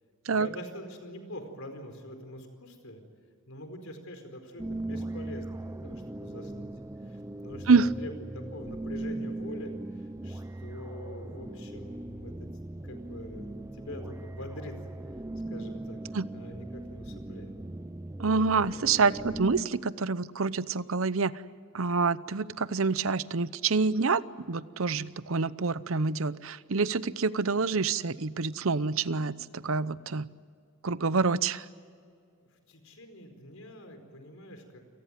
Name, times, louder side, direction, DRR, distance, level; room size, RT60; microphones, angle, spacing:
voice 1, 0.3-3.0 3.5-6.7 7.0-12.5 12.8-14.7 15.5-16.0 16.3-17.5 19.1-19.5 32.7-34.8, left 1 dB, 75° left, 6 dB, 4.7 m, -44 dB
sound 1, 4.6-19.6, right 2 dB, 15° right, 0.6 m, -39 dB
voice 2, 18.2-21.3 21.7-30.3 30.8-31.6, right 4 dB, 70° right, 16 dB, 0.8 m, -27 dB
28.5 x 19.0 x 9.3 m, 2.3 s
head